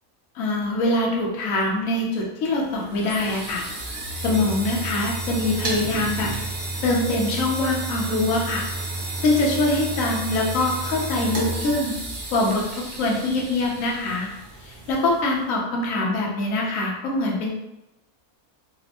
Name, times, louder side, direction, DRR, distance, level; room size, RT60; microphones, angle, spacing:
voice 1, 0.3-3.6 4.2-6.3 6.8-8.7 9.2-11.9 12.3-14.3 14.6-17.5, left 2 dB, 65° left, -2 dB, 1.1 m, -23 dB
sound 1, 2.6-15.4, right 2 dB, 55° right, 0.6 m, -32 dB
4.2 x 2.0 x 2.8 m, 0.96 s
omnidirectional pair, 1.5 m